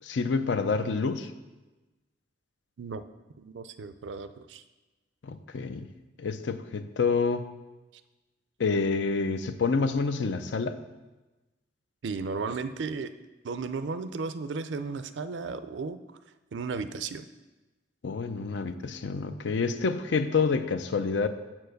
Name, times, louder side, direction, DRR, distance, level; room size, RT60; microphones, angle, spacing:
voice 1, 0.0-1.3 5.2-5.9 6.2-7.5 8.6-10.8 18.0-21.3, left 4 dB, 75° left, 10 dB, 0.5 m, -28 dB
voice 2, 3.4-4.6 12.0-13.1 13.4-16.0 16.5-17.3, right 4 dB, 80° right, 12 dB, 0.4 m, -34 dB
7.3 x 4.7 x 6.4 m, 1.1 s
head